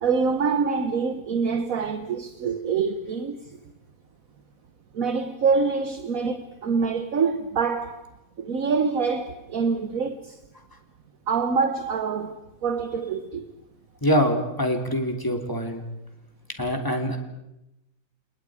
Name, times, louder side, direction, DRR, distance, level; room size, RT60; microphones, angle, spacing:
voice 1, 0.0-3.4 4.9-8.1 8.4-10.4 11.3-12.3 12.6-13.5, right 5 dB, 60° right, 1.5 m, -25 dB
voice 2, 14.0-15.8 16.6-17.2, equal, 10° left, 3.1 m, -24 dB
29.5 x 28.0 x 4.9 m
omnidirectional pair, 1.7 m